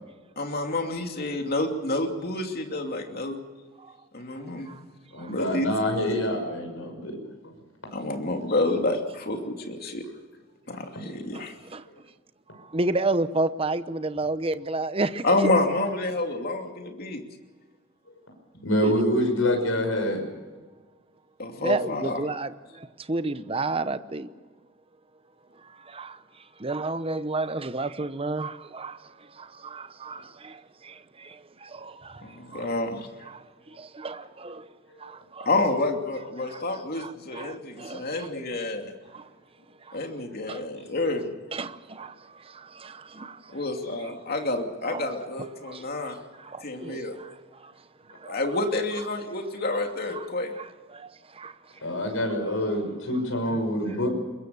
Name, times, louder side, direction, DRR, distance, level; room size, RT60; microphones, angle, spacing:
voice 1, 0.4-3.4 4.1-4.7 5.3-5.7 7.9-10.0 10.7-11.5 15.2-17.2 21.4-22.2 32.2-33.1 35.4-38.9 39.9-41.3 43.5-46.2 46.6-47.2 48.3-50.5, left 2 dB, 50° left, 2.7 m, -28 dB
voice 2, 5.1-7.2 18.6-20.2 34.9-35.0 51.8-54.1, equal, 80° left, 6.1 m, -26 dB
voice 3, 11.3-11.8 12.5-15.2 18.8-18.9 21.6-24.3 25.8-26.2 26.6-32.3 32.5-32.7 33.3-33.4 33.8-34.7 35.0-35.5 36.4-38.3 39.1-39.3 39.8-40.0 40.5-40.6 41.5-43.5 44.8-45.1 45.6-45.9 46.4-47.4 47.6-47.7 48.1-48.4 50.1-50.3 50.6-51.5 53.5-53.6, right 2 dB, 30° right, 0.9 m, -32 dB
22.5 x 21.5 x 6.9 m
head